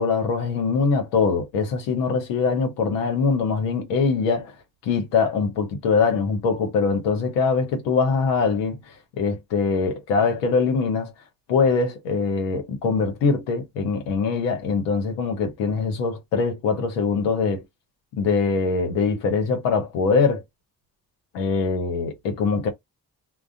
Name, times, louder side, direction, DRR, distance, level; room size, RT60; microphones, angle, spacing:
voice 1, 0.0-4.6 4.8-11.1 11.5-17.6 18.2-20.4 21.3-22.7, left 4 dB, 90° left, 0.7 m, -23 dB
2.4 x 2.1 x 2.4 m
hypercardioid pair, 45°, 40 cm